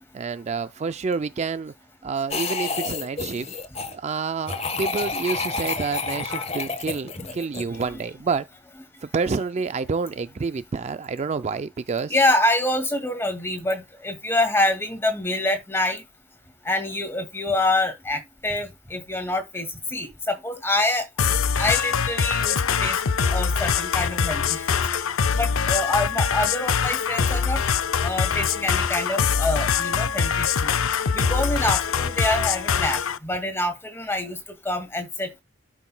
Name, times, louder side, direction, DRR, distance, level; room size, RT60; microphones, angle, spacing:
voice 1, 0.1-1.7 2.0-3.5 3.9-8.5 9.0-12.1, right 4 dB, 35° right, 0.3 m, -28 dB
sound 1, 2.3-3.9 4.5-8.0, left 4 dB, 30° left, 1.2 m, -29 dB
voice 2, 12.1-16.0 16.7-21.0 21.6-23.0 23.3-24.8 25.3-27.6 28.0-30.7 31.1-34.4 34.7-35.3, left 2 dB, 10° left, 1.9 m, -26 dB
sound 2, 21.2-33.2, left 6 dB, 80° left, 0.6 m, -23 dB
12.0 x 5.9 x 2.2 m
head